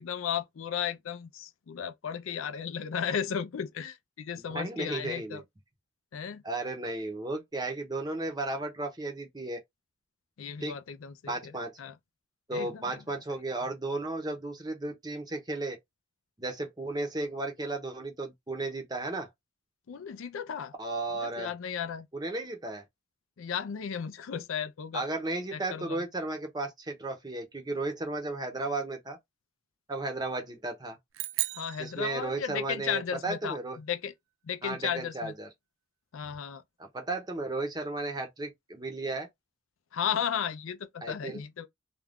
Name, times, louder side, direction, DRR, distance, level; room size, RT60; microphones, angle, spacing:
voice 1, 0.0-5.4 6.1-6.4 10.4-12.0 12.5-13.0 13.3-13.4 19.9-20.7 21.1-22.1 23.4-25.0 25.5-26.0 31.5-34.1 34.4-35.3 36.1-36.6 39.9-41.7, left 8 dB, 80° left, 0.4 m, -35 dB
voice 2, 4.4-5.4 6.4-9.6 10.6-10.7 11.3-11.8 12.5-15.8 16.4-19.3 20.8-21.5 22.1-22.8 24.9-29.2 29.9-31.0 31.8-33.8 34.6-35.5 36.8-39.3 41.0-41.4, right 2 dB, 20° right, 0.7 m, -34 dB
sound 1, 31.1-32.8, right 16 dB, 80° right, 0.3 m, -36 dB
2.5 x 2.2 x 3.4 m
head